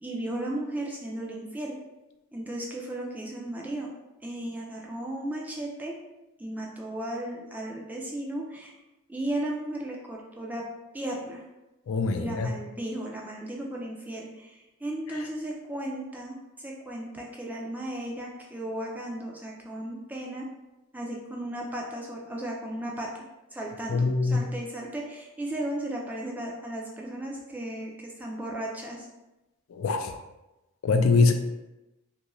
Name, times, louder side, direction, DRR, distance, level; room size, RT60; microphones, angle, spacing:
voice 1, 0.0-1.8 2.3-3.9 4.2-5.9 6.4-8.7 9.1-10.6 10.9-11.4 12.1-20.5 20.9-29.1, right 1 dB, 10° right, -2 dB, 0.3 m, -35 dB
voice 2, 11.9-12.5 23.9-24.5 29.7-30.1 30.8-31.3, left 4 dB, 75° left, 6 dB, 0.3 m, -23 dB
2.7 x 2.5 x 3.0 m, 1.0 s
head